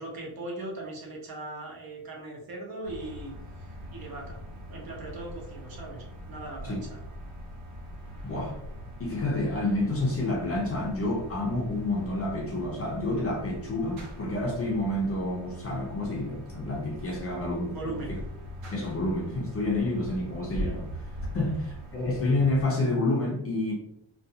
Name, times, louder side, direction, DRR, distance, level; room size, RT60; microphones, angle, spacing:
voice 1, 0.0-3.3 3.9-4.4 4.7-7.0 17.7-18.2, right 2 dB, 50° right, -1 dB, 0.7 m, -39 dB
sound 1, 2.8-22.7, equal, 80° right, 1.0 m, -41 dB
voice 2, 8.2-8.6 9.0-18.2 18.7-20.9 21.3-23.7, left 2 dB, 30° left, -2 dB, 0.5 m, -29 dB
2.4 x 2.3 x 2.7 m, 0.78 s
cardioid pair, 170°, 48 cm